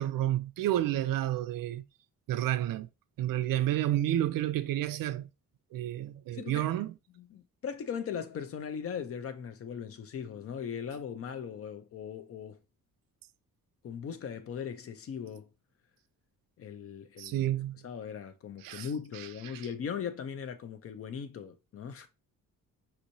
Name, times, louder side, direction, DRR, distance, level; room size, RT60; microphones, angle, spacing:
voice 1, 0.0-1.8 2.3-2.9 3.2-5.3 5.7-6.9 17.2-17.8 18.6-18.9 19.5-19.7, right 13 dB, 80° right, 0.5 m, -30 dB
voice 2, 6.3-6.7 7.2-12.6 13.8-15.5 16.6-17.5 17.8-22.1, left 7 dB, 45° left, 0.5 m, -39 dB
5.3 x 3.0 x 2.6 m
wide cardioid pair, 180°, 33 cm